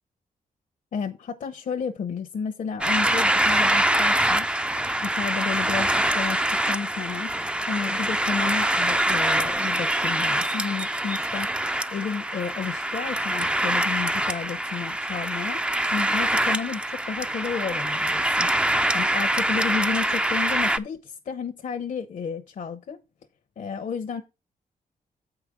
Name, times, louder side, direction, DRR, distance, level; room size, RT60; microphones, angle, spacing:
voice 1, 0.9-4.5 5.0-15.6 15.9-18.5 18.9-23.0 23.6-24.2, left 6 dB, 60° left, 0.8 m, -32 dB
sound 1, 2.8-20.8, right 1 dB, 5° right, 0.4 m, -24 dB
7.9 x 4.9 x 4.9 m
cardioid pair, 90°, 15 cm